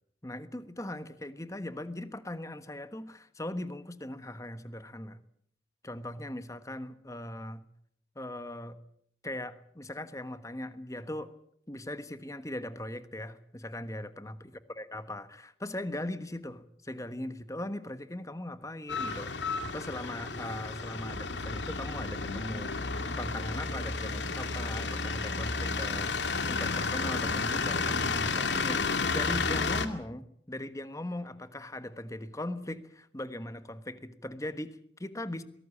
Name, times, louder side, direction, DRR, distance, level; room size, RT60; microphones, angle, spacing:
voice 1, 0.2-5.2 5.8-7.6 8.1-8.8 9.2-11.3 11.7-35.4, left 1 dB, 20° left, 12 dB, 1.3 m, -39 dB
sound 1, 18.9-29.9, left 4 dB, 80° left, 2.1 m, -32 dB
23.0 x 18.0 x 8.5 m, 0.67 s
head